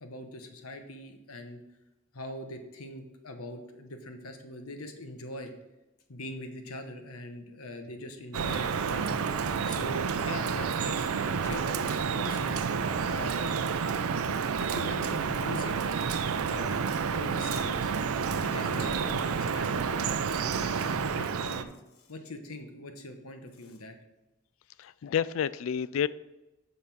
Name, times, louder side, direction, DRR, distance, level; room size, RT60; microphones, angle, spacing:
voice 1, 0.0-1.6 2.1-5.5 6.1-9.2 9.6-12.6 13.1-13.7 14.6-15.9 16.5-18.0 18.3-21.7 22.0-23.9, left 1 dB, 90° left, 6 dB, 1.1 m, -42 dB
Drip, 8.3-21.6, right 6 dB, 85° right, 0.5 m, -30 dB
voice 2, 24.8-26.1, left 8 dB, 70° left, 18 dB, 0.3 m, -29 dB
6.5 x 5.5 x 5.9 m, 0.99 s
head